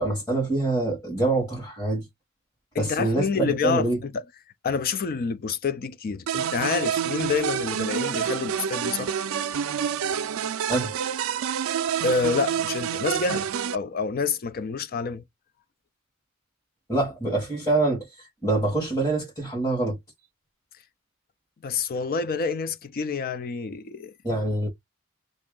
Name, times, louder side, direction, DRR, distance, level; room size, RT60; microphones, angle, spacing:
voice 1, 0.0-2.1 2.8-4.0 10.7-10.9 16.9-20.0 24.2-24.7, right 2 dB, 15° left, 1.3 m, -25 dB
voice 2, 2.7-4.1 4.6-9.2 12.0-15.2 21.6-24.1, left 5 dB, 45° left, 0.4 m, -28 dB
sound 1, 6.3-13.8, right 8 dB, 75° right, 0.4 m, -28 dB
2.9 x 2.6 x 3.7 m
head